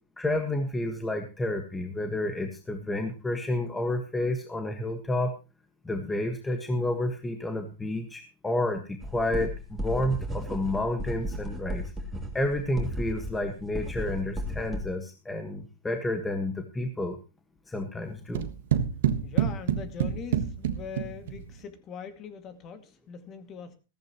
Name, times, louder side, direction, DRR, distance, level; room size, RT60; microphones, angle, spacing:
voice 1, 0.2-5.3 5.8-11.9 12.3-17.2 17.7-18.5, left 1 dB, 10° left, 5 dB, 1.5 m, -30 dB
sound 1, 9.0-14.8, equal, 10° right, 3.1 m, -34 dB
sound 2, 18.4-21.6, right 9 dB, 70° right, 1.5 m, -28 dB
voice 2, 19.2-23.7, left 6 dB, 30° left, 9 dB, 2.2 m, -41 dB
15.0 x 14.0 x 3.1 m, 0.30 s
hypercardioid pair, 135°, 0 cm